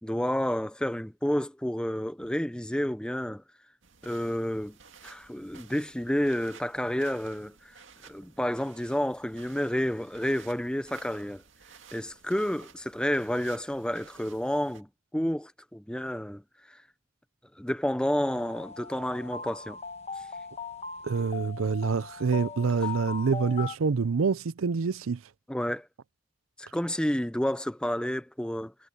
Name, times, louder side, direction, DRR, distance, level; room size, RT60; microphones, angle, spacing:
voice 1, 0.0-3.4 4.0-4.8 5.0-7.7 8.0-11.4 11.9-16.4 16.7-16.8 17.6-19.8 25.5-25.9 26.6-28.7, equal, 5° left, 0.7 m, -30 dB
sound 1, 3.8-14.8, right 6 dB, 65° right, 2.1 m, -54 dB
sound 2, 18.2-23.7, left 5 dB, 30° left, 1.3 m, -39 dB
voice 2, 21.1-25.2, right 5 dB, 85° right, 0.5 m, -26 dB
head